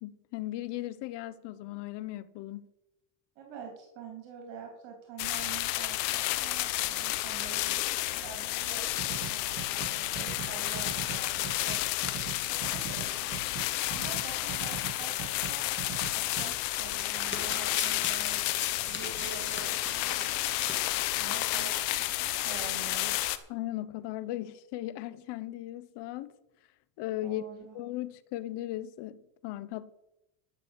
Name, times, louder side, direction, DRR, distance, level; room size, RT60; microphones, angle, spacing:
voice 1, 0.0-2.6 23.5-26.3 27.0-27.4 27.7-29.9, left 15 dB, 60° left, 1.0 m, -37 dB
voice 2, 3.3-7.8 8.2-11.8 12.4-15.6 16.1-18.4 18.9-20.8 21.2-21.7 22.2-23.3 27.2-27.8, right 6 dB, 65° right, 3.1 m, -46 dB
sound 1, 5.2-23.4, left 17 dB, 85° left, 1.1 m, -31 dB
sound 2, 9.0-16.5, right 8 dB, 40° right, 1.4 m, -42 dB
Domestic sounds home sounds, 16.9-21.2 21.6-21.7 22.0-22.1, left 4 dB, 25° left, 2.3 m, -39 dB
12.5 x 6.4 x 8.0 m
supercardioid pair, 105°, 48 cm